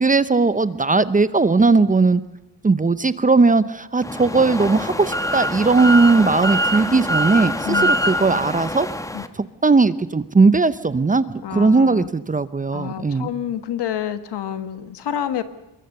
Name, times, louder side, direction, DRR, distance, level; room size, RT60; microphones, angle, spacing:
voice 1, 0.0-2.2 2.6-8.9 9.4-11.2 11.5-13.3, right 3 dB, 20° right, 14 dB, 0.7 m, -18 dB
sound 1, 4.0-9.3, equal, 10° left, 1.2 m, -24 dB
voice 2, 7.6-8.0 9.1-9.3 11.4-12.1 12.7-15.4, left 10 dB, 70° left, 11 dB, 1.6 m, -28 dB
24.0 x 22.0 x 6.7 m, 0.97 s
cardioid pair, 110°, 41 cm